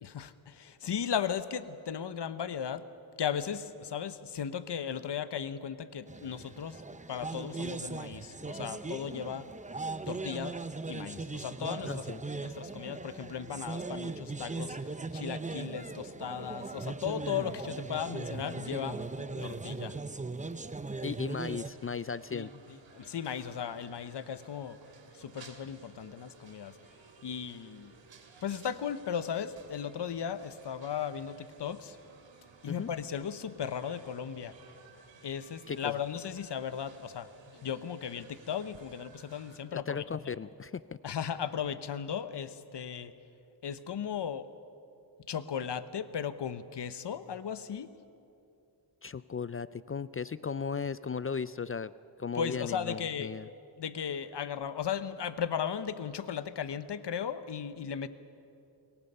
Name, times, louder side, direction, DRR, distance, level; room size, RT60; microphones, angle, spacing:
voice 1, 0.0-2.8 3.2-9.5 10.1-10.5 10.9-12.1 12.4-14.8 15.1-19.0 19.4-20.0 22.3-24.8 25.1-26.8 27.2-27.9 28.4-32.0 32.6-34.5 35.2-40.3 41.0-43.1 43.6-44.5 45.3-47.9 52.3-53.3 53.8-58.1, left 8 dB, 65° left, 13 dB, 1.1 m, -36 dB
sound 1, 6.1-21.7, right 3 dB, 15° right, 0.8 m, -39 dB
voice 2, 11.9-12.2 19.4-19.5 21.0-22.5 32.7-32.9 35.7-35.9 39.7-41.0 49.0-51.9 52.2-53.5, left 6 dB, 30° left, 16 dB, 0.4 m, -36 dB
sound 2, 21.4-39.6, right 5 dB, 80° right, 2.7 m, -57 dB
27.5 x 22.0 x 5.6 m, 2.7 s
cardioid pair, 80°, 45 cm